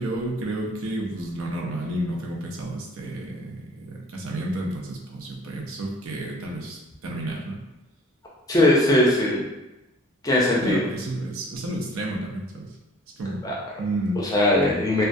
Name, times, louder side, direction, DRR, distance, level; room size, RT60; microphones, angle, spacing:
voice 1, 0.0-7.6 10.6-12.7 13.2-14.2, right 1 dB, 80° right, -1 dB, 0.5 m, -31 dB
voice 2, 8.5-9.4 10.2-10.8 13.4-13.5 14.3-15.0, left 1 dB, 15° left, -4 dB, 0.4 m, -19 dB
2.2 x 2.2 x 2.6 m, 0.98 s
head